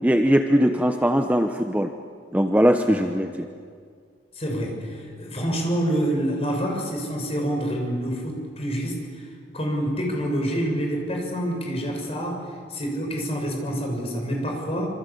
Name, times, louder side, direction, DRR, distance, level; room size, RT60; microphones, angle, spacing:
voice 1, 0.0-1.9 2.3-3.5, equal, 10° right, 5 dB, 0.9 m, -20 dB
voice 2, 4.3-9.3 9.5-14.9, equal, 30° left, 1 dB, 6.4 m, -27 dB
27.0 x 26.0 x 8.5 m, 2.1 s
head